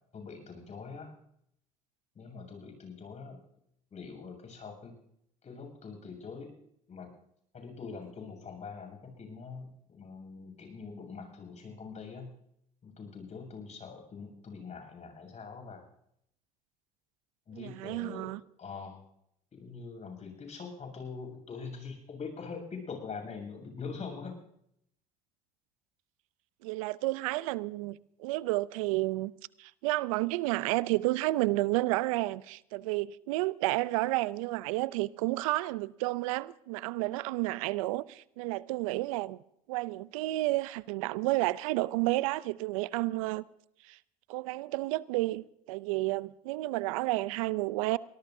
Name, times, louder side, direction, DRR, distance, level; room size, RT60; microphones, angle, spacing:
voice 1, 0.1-1.1 2.1-3.4 3.9-4.9 5.4-6.5 6.9-7.1 7.5-12.3 12.8-15.8 17.5-19.0 19.5-24.3, left 5 dB, 40° left, 7.6 m, -43 dB
voice 2, 17.5-18.4 26.6-29.3 29.6-39.4 39.7-43.4 43.9-44.0 44.3-48.0, right 19 dB, 80° right, 0.5 m, -31 dB
23.5 x 19.5 x 2.7 m
hypercardioid pair, 65°, 17 cm